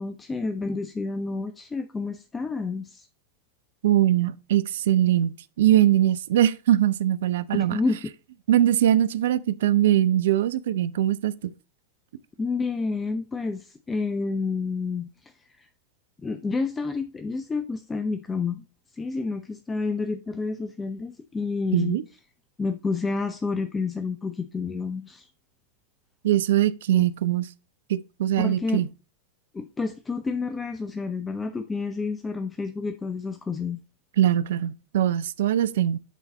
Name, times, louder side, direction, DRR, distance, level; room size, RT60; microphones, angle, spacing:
voice 1, 0.0-3.1 7.5-8.0 12.4-15.7 16.2-18.6 19.0-22.0 22.6-25.3 26.9-27.0 28.4-28.8 29.5-33.8, left 4 dB, 15° left, 0.5 m, -29 dB
voice 2, 3.8-7.8 8.5-11.5 21.7-22.0 26.2-27.5 27.9-28.9 34.2-36.0, right 12 dB, 60° right, 0.4 m, -22 dB
8.2 x 4.0 x 4.1 m
figure-of-eight pair, 90°, 0 cm